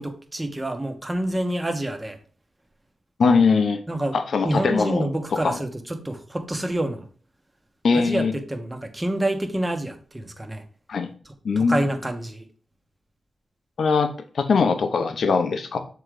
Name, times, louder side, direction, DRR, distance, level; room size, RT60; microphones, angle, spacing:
voice 1, 0.0-2.2 3.9-4.2 4.4-7.0 7.9-10.6 11.6-12.5, right 1 dB, 20° right, 5 dB, 1.3 m, -27 dB
voice 2, 3.2-3.8 4.1-5.1 5.4-5.5 7.8-8.3 10.9-11.1 11.4-11.8 13.8-15.8, left 4 dB, 75° left, 8 dB, 0.8 m, -21 dB
6.9 x 3.8 x 4.9 m, 0.42 s
cardioid pair, 55°, 0 cm